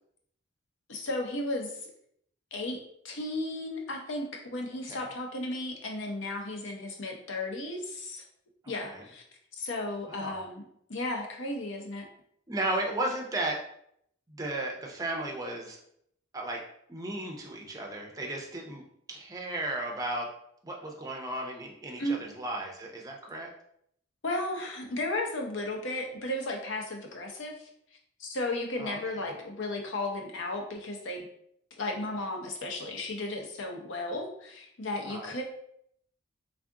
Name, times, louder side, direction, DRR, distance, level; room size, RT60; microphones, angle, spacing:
voice 1, 0.9-1.9 2.5-2.8 3.0-8.2 8.7-9.2 9.6-12.0 22.0-22.2 24.2-27.7 28.2-31.3 31.8-35.4, left 2 dB, 60° left, 2 dB, 0.7 m, -34 dB
voice 2, 10.1-10.4 12.5-13.6 14.3-15.8 16.3-16.6 16.9-20.3 20.6-23.5 28.8-29.3 35.0-35.3, right 1 dB, 15° right, 0 dB, 0.5 m, -35 dB
3.5 x 2.4 x 3.6 m, 0.70 s
head